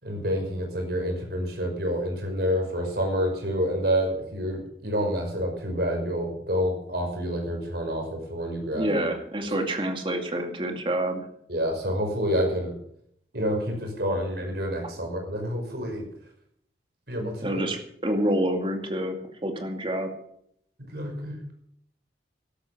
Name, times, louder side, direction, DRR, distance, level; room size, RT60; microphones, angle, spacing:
voice 1, 0.0-9.1 9.4-9.5 11.5-12.8 13.3-16.0 17.1-17.7 20.8-21.4, equal, 55° right, 2 dB, 5.7 m, -28 dB
voice 2, 8.7-11.2 17.4-20.1, right 1 dB, 30° right, 4 dB, 2.4 m, -28 dB
12.5 x 12.5 x 6.9 m, 0.69 s
head